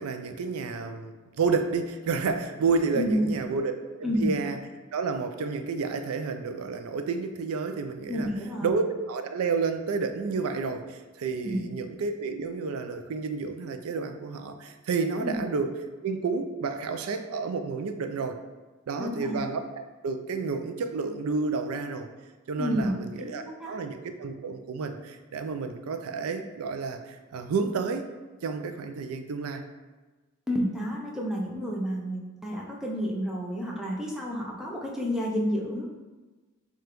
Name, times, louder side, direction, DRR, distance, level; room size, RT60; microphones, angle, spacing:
voice 1, 0.0-3.7 4.0-4.6 4.9-8.3 8.6-15.8 16.0-18.4 18.9-19.6 20.0-22.1 22.5-28.1 28.4-29.6, right 4 dB, 85° right, 7 dB, 0.4 m, -30 dB
voice 2, 2.9-3.4 4.0-4.3 8.1-8.7 11.4-11.6 15.2-15.4 19.0-19.4 22.6-23.8 30.5-35.9, equal, ahead, -3 dB, 0.4 m, -30 dB
4.9 x 2.3 x 3.0 m, 1.2 s
head